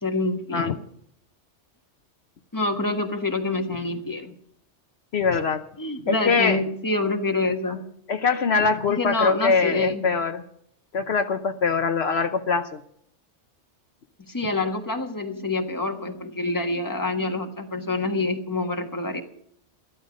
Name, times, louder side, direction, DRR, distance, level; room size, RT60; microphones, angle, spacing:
voice 1, 0.0-0.7 2.5-4.3 5.8-7.8 9.0-10.0 14.2-19.2, left 2 dB, 15° left, 4 dB, 1.5 m, -27 dB
voice 2, 5.1-5.6 6.1-6.6 8.1-10.4 10.9-12.8, left 5 dB, 65° left, 7 dB, 1.0 m, -23 dB
14.0 x 13.0 x 5.2 m, 0.66 s
omnidirectional pair, 1.2 m